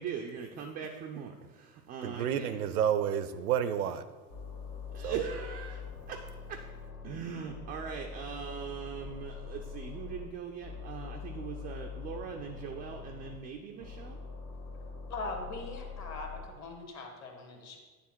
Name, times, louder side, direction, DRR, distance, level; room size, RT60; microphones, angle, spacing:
voice 1, 0.0-2.6 4.9-5.8 6.1-6.6 7.0-14.2, right 7 dB, 20° right, 2 dB, 0.3 m, -40 dB
voice 2, 2.0-4.1 5.0-5.2, right 9 dB, 70° right, 12 dB, 0.6 m, -30 dB
sound 1, 4.3-7.2 7.5-10.3 10.6-13.3 13.8-16.4, left 5 dB, 65° left, 1.5 m, -43 dB
voice 3, 15.1-17.8, left 2 dB, 35° left, 4 dB, 1.3 m, -41 dB
9.7 x 3.5 x 4.4 m, 1.3 s
figure-of-eight pair, 75°, 46 cm